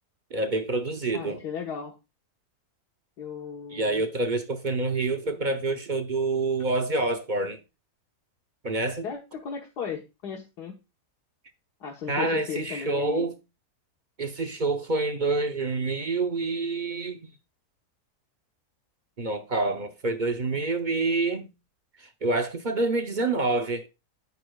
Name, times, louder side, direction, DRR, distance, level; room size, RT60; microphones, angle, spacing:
voice 1, 0.3-1.4 3.7-7.6 8.6-9.1 12.1-13.4 14.2-17.3 19.2-21.5 22.2-23.9, right 3 dB, 40° right, 0.7 m, -27 dB
voice 2, 1.1-2.0 3.2-4.0 9.0-10.7 11.8-13.3, left 6 dB, 85° left, 1.8 m, -35 dB
9.3 x 8.4 x 2.3 m
omnidirectional pair, 1.7 m